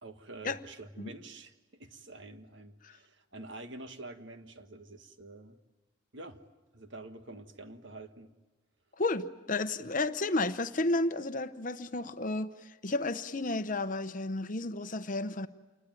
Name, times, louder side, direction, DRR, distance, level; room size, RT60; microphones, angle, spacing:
voice 1, 0.0-5.6 6.1-6.4 6.7-8.3, right 2 dB, 60° right, 1.6 m, -47 dB
voice 2, 9.0-15.5, left 2 dB, 40° left, 0.9 m, -32 dB
28.0 x 21.5 x 9.2 m
head